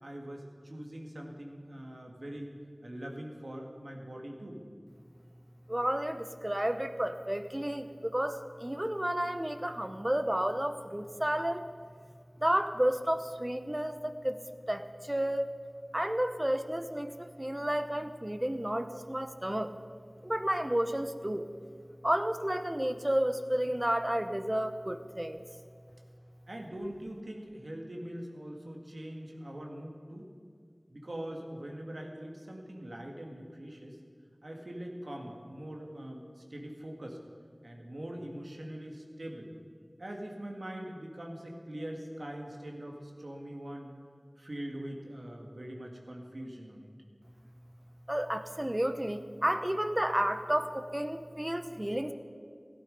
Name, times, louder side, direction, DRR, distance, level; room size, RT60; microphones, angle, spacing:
voice 1, 0.0-2.5 2.8-4.6 26.5-30.3 30.9-34.0 34.4-37.2 37.6-39.5 40.0-43.9 44.4-46.9, right 1 dB, 75° right, 1 dB, 2.0 m, -42 dB
voice 2, 5.7-11.7 12.4-14.4 14.7-15.5 15.9-19.7 20.2-21.5 22.0-25.4 48.1-52.1, right 1 dB, 20° right, 9 dB, 0.9 m, -31 dB
17.0 x 11.5 x 5.4 m, 2.1 s
wide cardioid pair, 45°, 0 cm